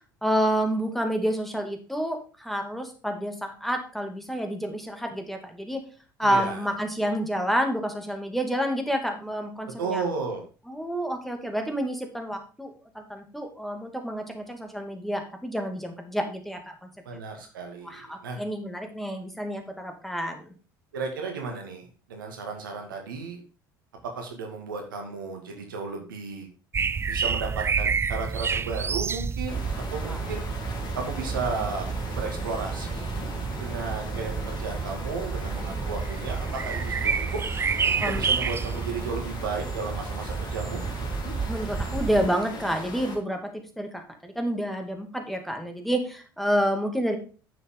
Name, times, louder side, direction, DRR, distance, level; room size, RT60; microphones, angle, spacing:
voice 1, 0.2-5.8 6.2-10.0 10.7-16.9 17.8-20.5 30.0-30.2 38.0-38.3 41.5-47.2, equal, ahead, 4 dB, 2.4 m, -29 dB
voice 2, 6.2-6.7 9.8-10.4 17.1-18.4 20.9-23.4 24.2-26.5 27.1-29.6 29.9-30.4 30.9-33.1 33.6-37.4 38.0-40.8, right 4 dB, 80° right, 2 dB, 2.1 m, -34 dB
sound 1, 26.7-42.3, right 5 dB, 20° right, 0.5 m, -30 dB
sound 2, 29.5-43.2, left 2 dB, 40° left, 3.1 m, -39 dB
9.7 x 7.1 x 3.8 m, 0.36 s
figure-of-eight pair, 65°, 11 cm